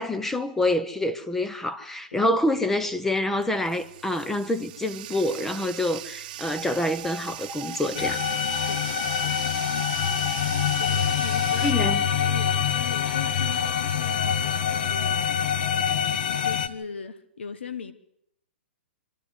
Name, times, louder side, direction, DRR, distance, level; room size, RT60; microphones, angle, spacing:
voice 1, 0.0-8.2 11.6-12.0, left 1 dB, 5° left, 0.7 m, -26 dB
Bathtub (filling or washing), 2.5-11.7, right 13 dB, 45° right, 1.0 m, -40 dB
sound 1, 6.6-9.3 9.8-10.9 11.4-11.5, equal, 25° right, 1.2 m, -39 dB
sound 2, 7.9-16.7, left 8 dB, 55° left, 1.0 m, -25 dB
voice 2, 8.1-9.5 10.8-11.8 12.2-15.5 16.4-17.9, left 6 dB, 85° left, 1.5 m, -40 dB
27.0 x 12.5 x 8.1 m
hypercardioid pair, 155°, 6 cm